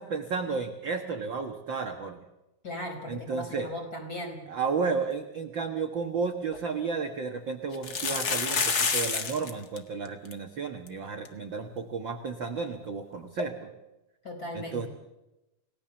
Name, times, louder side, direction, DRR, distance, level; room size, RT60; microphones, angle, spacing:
voice 1, 0.0-2.2 3.1-3.7 4.5-13.7 14.5-14.9, right 5 dB, 55° right, 5 dB, 1.4 m, -32 dB
voice 2, 2.6-4.4 14.2-14.9, left 1 dB, 25° left, 3 dB, 5.1 m, -37 dB
sound 1, 6.1-6.2 6.5-6.6 7.7-9.5 9.8-9.9 10.1-10.3 10.9-11.0 11.3-11.4 13.4-13.5, left 5 dB, 40° left, 1.4 m, -28 dB
29.5 x 18.0 x 7.1 m, 0.97 s
omnidirectional pair, 4.1 m